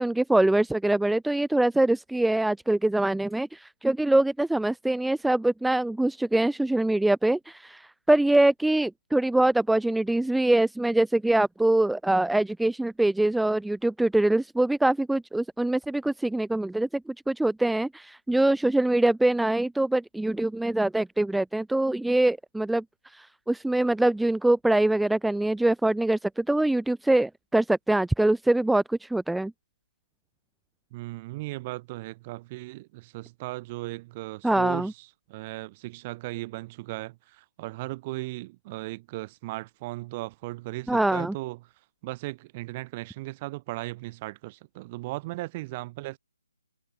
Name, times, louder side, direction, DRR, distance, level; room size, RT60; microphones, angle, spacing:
voice 1, 0.0-17.0 17.3-22.8 23.1-29.5 34.4-34.9 40.9-41.3, right 1 dB, ahead, 1.5 m, -24 dB
voice 2, 30.9-41.6 42.0-46.2, right 21 dB, 25° right, 7.9 m, -37 dB
figure-of-eight pair, 140°, 0 cm